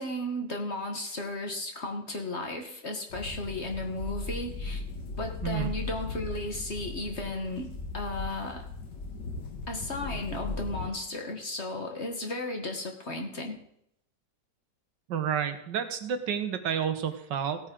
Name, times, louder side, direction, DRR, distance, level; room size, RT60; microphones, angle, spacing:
voice 1, 0.0-4.8 5.2-8.7 9.7-13.6, left 2 dB, 40° left, 3 dB, 1.4 m, -35 dB
sound 1, 3.1-10.9, left 3 dB, 65° left, 2.1 m, -37 dB
voice 2, 15.1-17.6, right 8 dB, 75° right, 9 dB, 1.6 m, -30 dB
16.5 x 8.9 x 3.8 m, 0.75 s
omnidirectional pair, 2.0 m